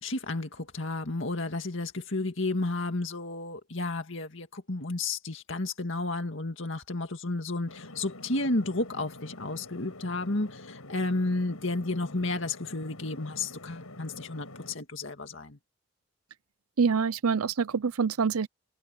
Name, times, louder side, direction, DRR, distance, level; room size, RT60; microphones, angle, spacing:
voice 1, 0.0-15.6, left 2 dB, 60° left, 2.1 m, -32 dB
sound 1, 7.7-14.8, left 2 dB, 85° left, 7.0 m, -47 dB
voice 2, 16.8-18.5, right 5 dB, 90° right, 0.6 m, -26 dB
head